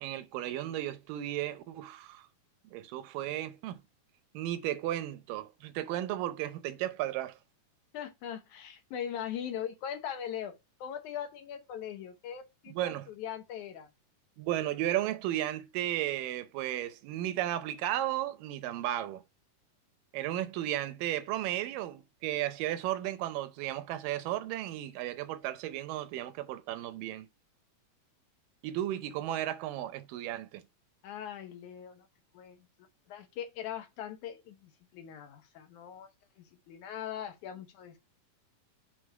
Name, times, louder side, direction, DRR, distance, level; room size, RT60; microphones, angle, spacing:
voice 1, 0.0-2.3 2.7-3.8 4.3-7.4 12.7-13.1 14.4-19.2 20.1-27.3 28.6-30.6, right 13 dB, 85° right, 2.4 m, -34 dB
voice 2, 7.9-13.9 31.0-32.1 32.3-32.6 33.1-36.1 36.4-38.0, left 9 dB, 70° left, 2.2 m, -40 dB
6.4 x 3.9 x 4.7 m
omnidirectional pair, 3.9 m